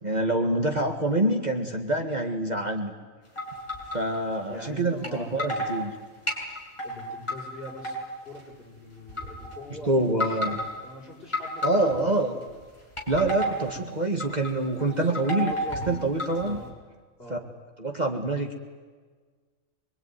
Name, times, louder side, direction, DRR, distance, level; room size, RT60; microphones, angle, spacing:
voice 1, 0.0-2.9 3.9-5.9 9.9-10.6 11.6-12.4 13.1-15.5 15.9-16.6 17.3-17.4 17.8-18.6, right 2 dB, 30° right, 3 dB, 2.0 m, -26 dB
sound 1, 3.4-4.2 5.0-5.1 5.4-5.8 6.3-7.4 7.6-8.4 9.1-9.6 10.1-10.8 11.3-12.2 12.8-13.7 14.2-14.5 14.8-16.7, equal, 20° left, 6.0 m, -31 dB
voice 2, 4.5-5.9 6.8-10.5 10.8-12.5 13.4-13.6 14.8-16.1 16.4-16.7 17.2-17.5, left 1 dB, 45° left, -2 dB, 6.8 m, -43 dB
25.0 x 22.5 x 9.5 m, 1.5 s
omnidirectional pair, 1.4 m